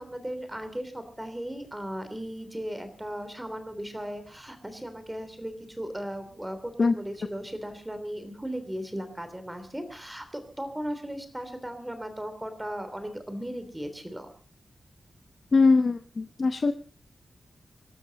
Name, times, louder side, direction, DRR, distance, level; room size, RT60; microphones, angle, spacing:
voice 1, 0.0-14.3, equal, 10° right, 9 dB, 3.1 m, -37 dB
voice 2, 15.5-16.7, left 4 dB, 45° left, 9 dB, 0.8 m, -21 dB
25.0 x 13.0 x 4.0 m, 0.36 s
wide cardioid pair, 125°, 0 cm